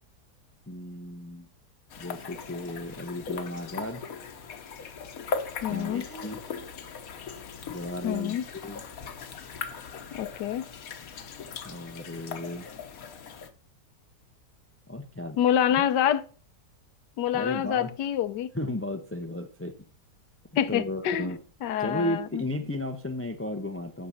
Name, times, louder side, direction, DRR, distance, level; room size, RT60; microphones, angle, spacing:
voice 1, 0.7-1.5 2.0-4.1 5.7-6.4 7.7-8.8 11.6-12.7 14.9-15.4 17.3-17.9 18.5-19.8 20.7-21.4 21.8-24.1, left 1 dB, 15° left, 0.4 m, -34 dB
sound 1, 1.9-13.5, left 6 dB, 55° left, 1.3 m, -39 dB
voice 2, 5.6-6.0 8.0-8.4 10.1-10.6 15.4-16.2 17.2-18.5 20.6-21.3 21.6-22.4, left 10 dB, 75° left, 1.3 m, -26 dB
9.6 x 6.5 x 5.6 m
omnidirectional pair, 1.9 m